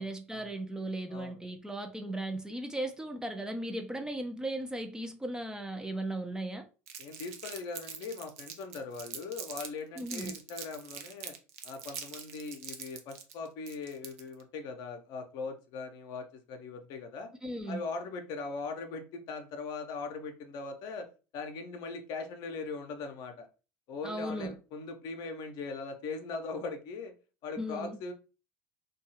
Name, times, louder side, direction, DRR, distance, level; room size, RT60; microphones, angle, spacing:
voice 1, 0.0-6.7 10.0-10.3 17.4-17.8 24.0-24.6 27.6-28.0, right 1 dB, 10° right, 0.4 m, -37 dB
Crumpling crinkling, 6.9-9.7 10.0-14.4, right 8 dB, 70° right, 0.5 m, -43 dB
voice 2, 7.0-11.3 11.6-17.3 17.7-21.1 21.3-23.5 23.9-27.1 27.4-28.1, left 4 dB, 55° left, 0.6 m, -40 dB
2.6 x 2.2 x 2.8 m
hypercardioid pair, 70°, 8 cm